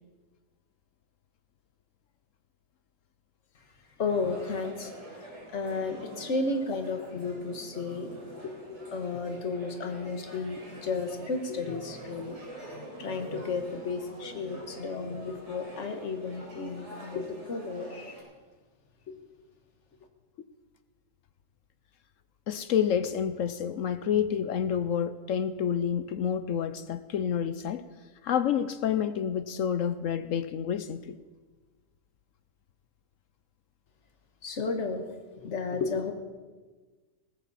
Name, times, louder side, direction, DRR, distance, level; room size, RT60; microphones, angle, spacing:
voice 1, 4.0-4.9 5.5-12.4 12.7-18.1 19.1-19.2 34.4-35.1 35.4-36.1, left 4 dB, 50° left, 1.7 m, -33 dB
sound 1, 4.0-18.2, right 2 dB, 45° right, 4.5 m, -46 dB
voice 2, 22.5-27.8 28.2-31.2, left 8 dB, 65° left, 0.9 m, -29 dB
19.0 x 15.0 x 4.2 m
omnidirectional pair, 1.6 m